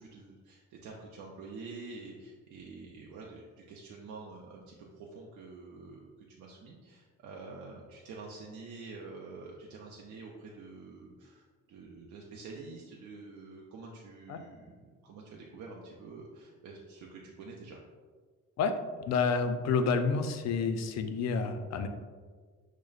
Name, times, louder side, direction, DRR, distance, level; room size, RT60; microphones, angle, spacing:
voice 1, 0.0-6.1 6.4-17.8, right 3 dB, 75° right, -1 dB, 0.5 m, -47 dB
voice 2, 19.1-21.9, left 5 dB, 60° left, 7 dB, 0.4 m, -29 dB
6.1 x 2.1 x 2.4 m, 1.5 s
cardioid pair, 90°, 30 cm